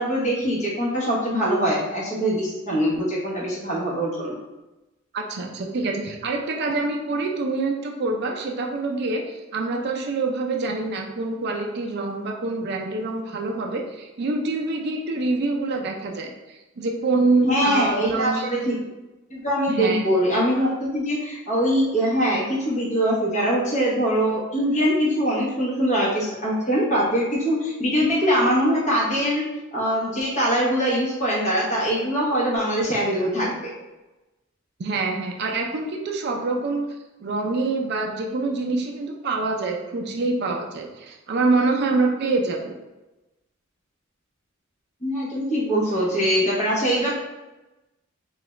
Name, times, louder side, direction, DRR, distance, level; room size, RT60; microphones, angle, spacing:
voice 1, 0.0-4.3 17.4-18.9 19.3-29.5 29.7-33.5 45.0-47.2, equal, 35° left, -5 dB, 1.1 m, -23 dB
voice 2, 5.1-18.5 19.7-20.0 34.8-36.8 37.2-42.8, right 3 dB, 55° right, 1 dB, 0.4 m, -26 dB
3.7 x 2.4 x 3.1 m, 1.0 s
head